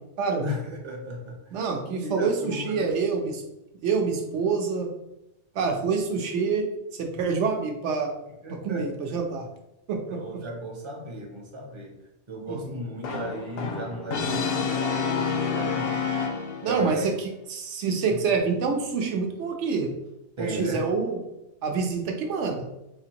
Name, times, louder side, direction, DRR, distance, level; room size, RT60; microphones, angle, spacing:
voice 1, 0.4-2.9 8.4-8.9 10.1-12.0 12.3-16.1 16.6-17.1 18.1-18.2 20.4-20.9, equal, 35° right, 1 dB, 0.5 m, -35 dB
voice 2, 1.5-3.4 3.8-4.9 5.5-6.7 6.9-8.1 8.5-9.5 9.9-10.0 12.5-12.8 16.6-19.9 20.4-21.2 21.6-22.6, right 5 dB, 80° right, 3 dB, 1.0 m, -27 dB
Brass instrument, 13.0-16.8, left 5 dB, 65° left, 0.7 m, -28 dB
4.4 x 2.5 x 2.8 m, 0.91 s
omnidirectional pair, 1.2 m